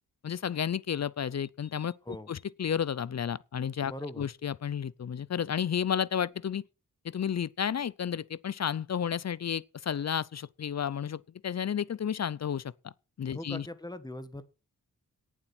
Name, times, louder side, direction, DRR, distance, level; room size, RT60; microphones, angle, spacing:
voice 1, 0.2-1.9 2.3-6.6 7.0-12.9 13.2-13.7, left 8 dB, 50° left, 0.6 m, -32 dB
voice 2, 3.9-4.3 13.3-14.4, left 1 dB, 10° left, 1.5 m, -40 dB
18.0 x 7.5 x 6.1 m
wide cardioid pair, 170°, 34 cm